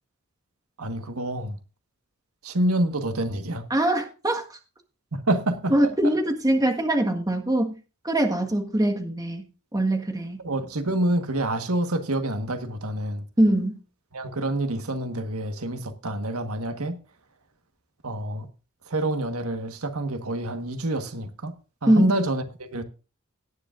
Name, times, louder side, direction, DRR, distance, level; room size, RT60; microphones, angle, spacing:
voice 1, 0.8-1.6 2.4-3.7 5.1-5.7 6.0-6.2 10.4-13.2 14.1-17.0 18.0-18.5 18.9-21.5 21.8-22.8, right 1 dB, 85° right, 1.6 m, -27 dB
voice 2, 3.7-4.4 5.7-7.7 8.0-9.4 9.7-10.4 13.4-13.8 21.9-22.2, right 1 dB, 15° right, 1.7 m, -22 dB
17.5 x 10.0 x 2.6 m
head